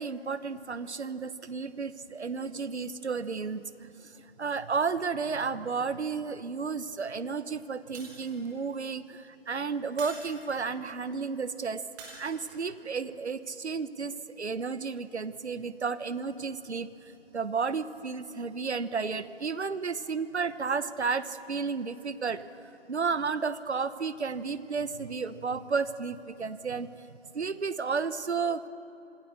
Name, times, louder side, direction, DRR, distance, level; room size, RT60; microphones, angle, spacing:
voice 1, 0.0-11.8 12.2-22.4 22.9-27.1 27.3-28.7, right 5 dB, 75° right, 14 dB, 1.1 m, -32 dB
Shatter, 7.9-8.7 10.0-10.8 12.0-12.8, right 4 dB, 5° right, 1.0 m, -47 dB
26.0 x 18.0 x 6.7 m, 2.9 s
figure-of-eight pair, 160°, 34 cm